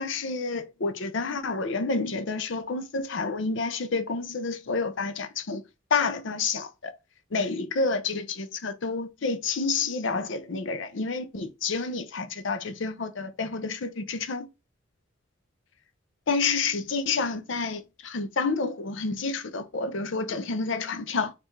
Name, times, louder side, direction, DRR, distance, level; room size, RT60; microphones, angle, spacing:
voice 1, 0.0-5.6 5.9-6.9 7.3-14.5 16.3-21.3, left 4 dB, 65° left, 0.6 m, -29 dB
4.4 x 2.5 x 4.5 m
head